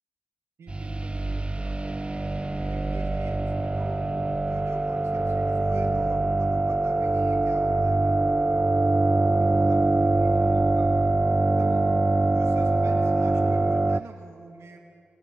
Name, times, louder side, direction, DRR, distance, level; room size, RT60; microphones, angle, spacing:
voice 1, 0.6-2.0 2.7-4.0 4.5-11.0 11.4-11.9 12.3-14.8, right 3 dB, 85° right, 2 dB, 2.3 m, -46 dB
sound 1, 0.7-14.0, right 2 dB, 25° right, 0.4 m, -23 dB
Bowed string instrument, 1.4-6.4, left 1 dB, 60° left, 6.3 m, -54 dB
sound 2, 2.4-7.4, right 2 dB, 60° right, 6.1 m, -48 dB
27.5 x 20.0 x 5.5 m, 2.3 s
cardioid pair, 45°, 5 cm